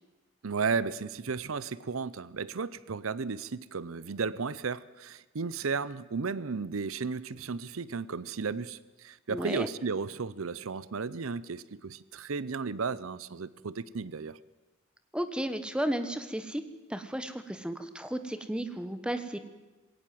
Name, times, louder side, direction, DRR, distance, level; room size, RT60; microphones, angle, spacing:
voice 1, 0.4-14.4, right 5 dB, 80° right, 19 dB, 0.7 m, -34 dB
voice 2, 9.3-9.7 15.1-16.6 16.9-19.4, right 1 dB, 5° right, 10 dB, 1.3 m, -33 dB
21.5 x 17.5 x 7.6 m, 1.2 s
head